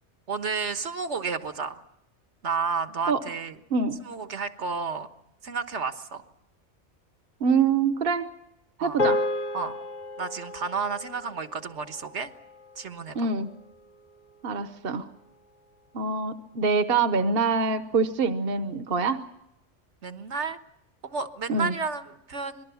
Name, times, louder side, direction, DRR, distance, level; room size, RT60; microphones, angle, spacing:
voice 1, 0.3-1.8 2.4-3.6 4.0-5.1 5.4-6.2 8.8-9.0 9.5-9.7 10.2-12.3 12.8-13.2 20.0-20.6 21.0-22.6, right 5 dB, 70° right, 9 dB, 1.6 m, -31 dB
voice 2, 7.4-8.3 8.8-9.2 13.1-13.5 14.4-15.1 15.9-19.2 21.5-21.7, right 4 dB, 55° right, 10 dB, 1.2 m, -25 dB
sound 1, 9.0-13.5, left 2 dB, 40° left, 1.1 m, -32 dB
26.0 x 20.0 x 7.0 m, 0.83 s
omnidirectional pair, 1.2 m